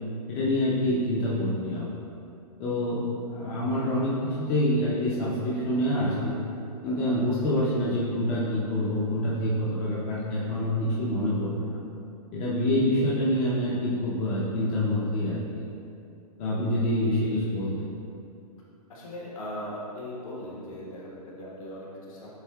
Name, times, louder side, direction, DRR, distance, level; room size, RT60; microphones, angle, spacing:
voice 1, 0.3-1.9 2.6-6.4 6.8-11.8 12.3-15.6 16.4-17.9, left 1 dB, 35° left, -7 dB, 0.7 m, -26 dB
voice 2, 18.9-22.3, left 1 dB, 60° left, -5 dB, 1.3 m, -39 dB
8.0 x 2.7 x 2.3 m, 2.6 s
hypercardioid pair, 120°, 20 cm